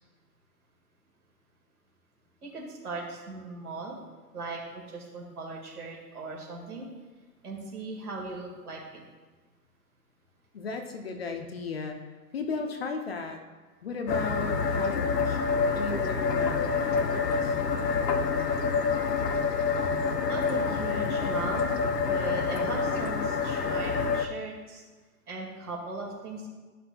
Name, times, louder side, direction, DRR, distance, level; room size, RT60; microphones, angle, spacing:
voice 1, 2.4-4.0 4.3-6.9 7.4-9.0 20.3-24.8 25.3-26.5, right 3 dB, 65° right, -1 dB, 2.1 m, -38 dB
voice 2, 10.5-13.4 13.8-15.4 15.8-17.6, left 4 dB, 40° left, 5 dB, 0.6 m, -36 dB
sound 1, 14.1-24.3, left 5 dB, 75° left, 0.8 m, -27 dB
12.0 x 5.9 x 2.3 m, 1.3 s
figure-of-eight pair, 135°, 49 cm